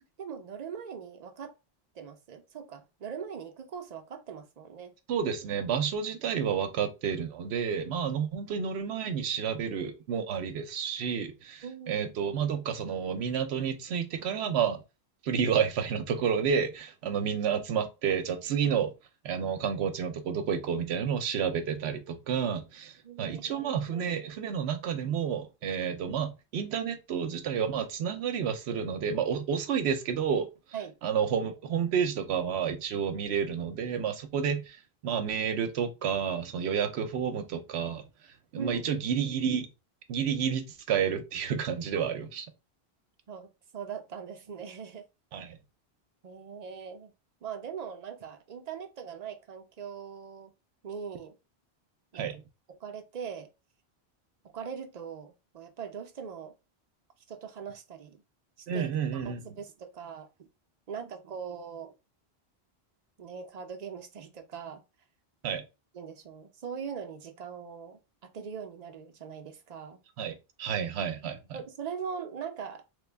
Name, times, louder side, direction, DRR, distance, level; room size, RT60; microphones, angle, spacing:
voice 1, 0.2-1.5 1.9-4.9 11.6-12.2 18.6-18.8 23.0-24.0 30.7-31.0 38.5-38.9 42.0-42.1 43.3-45.0 46.2-47.1 47.4-50.5 50.8-51.3 52.1-52.3 52.7-53.5 54.4-56.5 57.3-58.2 58.6-60.5 60.9-61.9 63.2-64.8 65.9-70.0 71.5-72.8, right 7 dB, 50° right, 0.6 m, -41 dB
voice 2, 5.1-14.8 15.2-18.9 19.2-30.5 31.0-38.0 38.5-39.7 40.1-42.4 45.3-45.6 52.1-52.4 58.7-59.4 65.4-65.6 70.2-71.4, right 7 dB, 85° right, 0.9 m, -30 dB
3.1 x 2.2 x 3.3 m
omnidirectional pair, 1.1 m